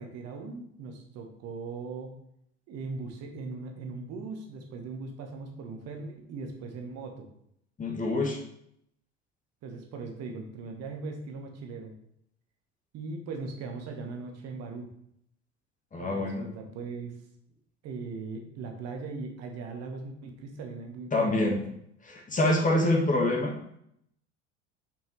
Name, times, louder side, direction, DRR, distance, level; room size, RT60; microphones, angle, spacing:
voice 1, 0.0-2.1 2.7-7.3 9.6-11.9 12.9-14.9 16.0-17.2 17.8-21.6, right 4 dB, 45° right, 3 dB, 1.3 m, -39 dB
voice 2, 7.8-8.4 15.9-16.5 21.1-21.6 22.0-23.5, left 1 dB, 20° left, 1 dB, 1.5 m, -26 dB
6.9 x 5.8 x 3.1 m, 0.71 s
figure-of-eight pair, 70°, 36 cm